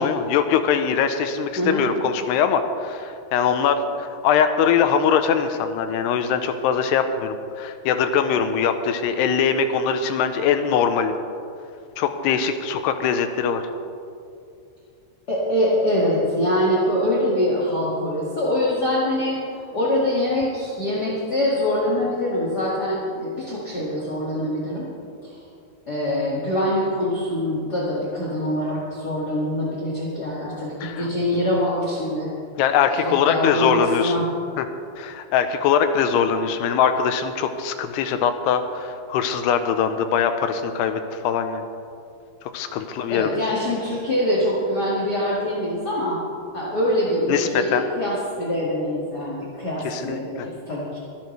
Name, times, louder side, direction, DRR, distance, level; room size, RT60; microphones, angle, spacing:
voice 1, 0.0-11.1 12.0-13.6 30.8-31.1 32.6-34.2 34.6-34.7 35.0-41.6 42.5-43.5 47.3-47.8 49.9-50.5, left 7 dB, 80° left, 8 dB, 2.7 m, -22 dB
voice 2, 1.6-1.9 15.3-24.8 25.2-25.3 25.9-32.3 33.0-34.3 43.1-46.2 46.5-51.0, left 1 dB, 40° left, -6 dB, 1.4 m, -24 dB
24.5 x 11.5 x 3.2 m, 2.5 s
omnidirectional pair, 5.0 m